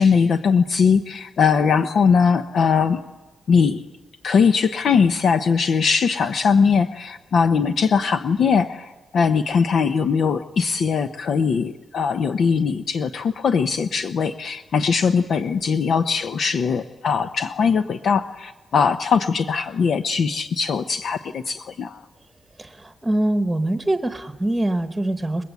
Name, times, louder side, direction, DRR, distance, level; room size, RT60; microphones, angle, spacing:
voice 1, 0.0-3.0 3.5-3.8 4.2-22.0, left 6 dB, 60° left, 8 dB, 0.8 m, -20 dB
voice 2, 22.6-25.4, right 1 dB, 10° right, 6 dB, 1.1 m, -23 dB
30.0 x 21.0 x 8.3 m, 1.2 s
wide cardioid pair, 180°, 0 cm